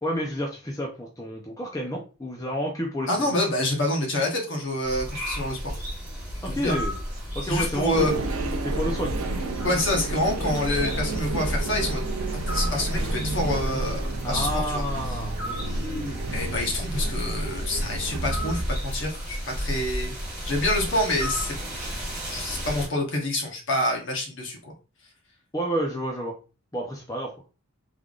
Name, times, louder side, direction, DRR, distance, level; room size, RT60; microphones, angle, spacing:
voice 1, 0.0-3.3 6.4-7.0 7.3-8.1 8.6-9.2 14.2-16.3 25.5-26.3 26.7-27.3, equal, 15° left, -1 dB, 0.5 m, -30 dB
voice 2, 3.1-5.7 6.5-6.8 7.4-8.1 9.6-12.0 12.5-14.8 16.3-20.1 20.4-21.6 22.3-24.7, left 1 dB, 55° left, 0 dB, 1.1 m, -27 dB
sound 1, 4.8-22.9, equal, 5° right, 1.7 m, -33 dB
sound 2, 7.9-18.7, right 2 dB, 80° right, 0.6 m, -30 dB
3.6 x 3.4 x 2.4 m, 0.32 s
head